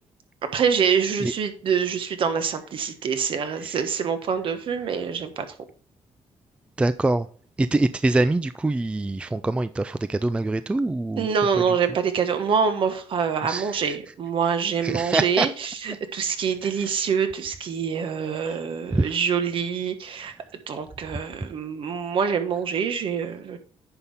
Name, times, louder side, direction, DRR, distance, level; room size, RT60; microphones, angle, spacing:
voice 1, 0.5-5.5 11.2-20.3 20.7-23.6, right 6 dB, 55° right, 1.4 m, -25 dB
voice 2, 6.8-7.3 7.6-11.3 13.5-13.7 14.8-15.5 18.5-18.6 18.9-19.1, right 2 dB, 10° right, 0.3 m, -24 dB
9.8 x 5.7 x 3.5 m
cardioid pair, 130°, 11 cm